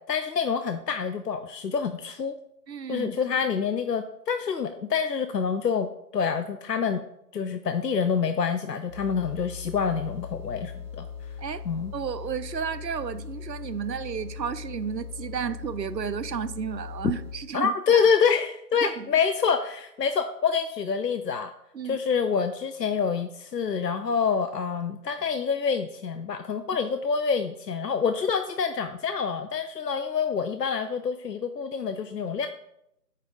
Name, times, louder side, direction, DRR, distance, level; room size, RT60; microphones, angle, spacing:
voice 1, 0.1-2.3 2.9-7.0 7.3-11.1 11.7-11.9 17.5-21.5 21.8-32.5, left 6 dB, 75° left, 8 dB, 0.6 m, -27 dB
voice 2, 2.7-3.1 11.4-11.6 11.9-18.1 18.8-19.1 21.7-22.0, right 7 dB, 85° right, 14 dB, 0.6 m, -32 dB
sound 1, 8.9-17.6, left 7 dB, 50° right, 1.1 m, -39 dB
9.2 x 4.0 x 3.6 m, 0.79 s
figure-of-eight pair, 180°, 49 cm